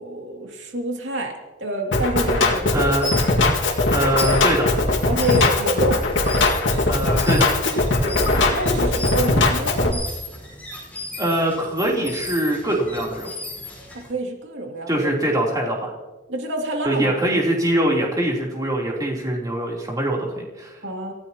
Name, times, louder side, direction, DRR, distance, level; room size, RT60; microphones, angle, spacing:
voice 1, 0.0-3.0 5.0-6.0 8.0-10.0 13.9-15.1 16.3-17.1 20.8-21.1, right 1 dB, 80° right, 1 dB, 2.6 m, -27 dB
Drum kit, 1.9-9.9, left 2 dB, 90° left, 2.0 m, -20 dB
voice 2, 2.7-3.1 3.9-4.7 6.9-7.5 11.2-13.3 14.9-15.9 16.9-20.7, right 1 dB, 20° right, -2 dB, 3.4 m, -23 dB
sound 1, 2.8-14.1, left 1 dB, 10° left, 5.1 m, -36 dB
28.0 x 15.5 x 3.0 m, 1.2 s
head